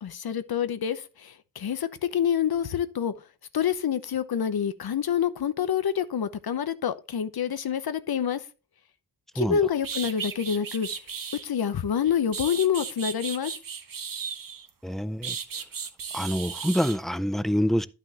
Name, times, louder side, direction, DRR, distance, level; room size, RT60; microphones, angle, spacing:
voice 1, 0.0-3.1 3.5-8.4 9.3-10.9 11.4-13.5, left 8 dB, 65° left, 0.9 m, -27 dB
sound 1, 9.4-9.5 9.8-11.5 12.0-14.7 15.2-17.0, right 6 dB, 55° right, 1.1 m, -35 dB
voice 2, 14.8-15.4 16.1-17.9, equal, ahead, 0.3 m, -26 dB
11.5 x 6.0 x 3.0 m
wide cardioid pair, 150°, 40 cm